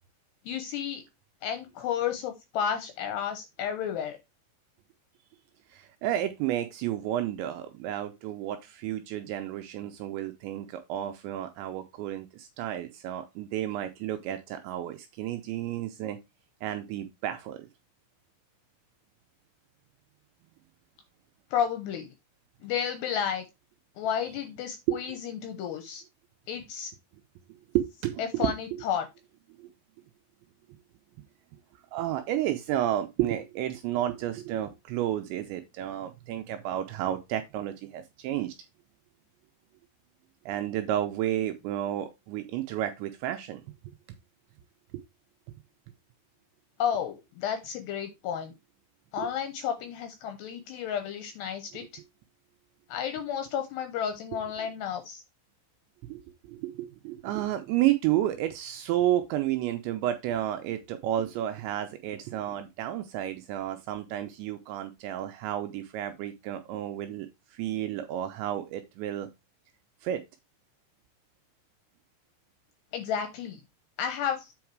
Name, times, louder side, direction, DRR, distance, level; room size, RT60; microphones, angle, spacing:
voice 1, 0.5-1.0 1.4-4.2 21.5-22.1 22.6-23.5 24.0-26.0 26.5-26.9 28.2-29.1 46.8-48.5 49.1-51.8 52.9-55.2 72.9-73.6 74.0-74.5, left 8 dB, 75° left, 2.6 m, -32 dB
voice 2, 5.7-16.2 16.6-17.7 24.9-25.0 27.7-28.5 29.6-29.7 31.9-38.5 40.5-43.6 49.2-49.3 54.6-54.7 56.1-69.3 70.0-70.2, right 12 dB, 85° right, 2.7 m, -31 dB
7.9 x 4.7 x 4.6 m
omnidirectional pair, 5.8 m